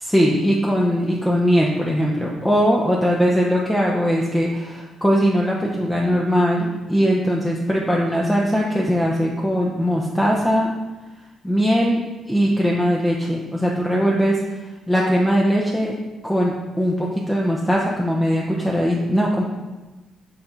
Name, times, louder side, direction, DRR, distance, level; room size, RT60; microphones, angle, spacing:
voice 1, 0.1-10.7 11.4-12.0 12.3-14.4 14.9-15.9 16.2-19.4, equal, 5° left, -3 dB, 0.8 m, -20 dB
6.7 x 3.7 x 4.1 m, 1.1 s
cardioid pair, 90°, 0 cm